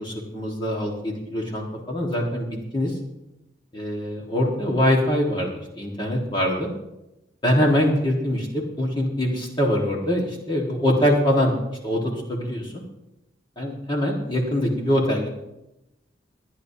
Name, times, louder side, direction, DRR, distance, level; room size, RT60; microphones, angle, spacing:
voice 1, 0.0-2.5 2.7-3.0 3.7-6.7 7.4-11.6 11.8-12.7 13.6-15.3, equal, 25° left, -1 dB, 1.7 m, -23 dB
22.5 x 9.8 x 2.8 m, 0.91 s
head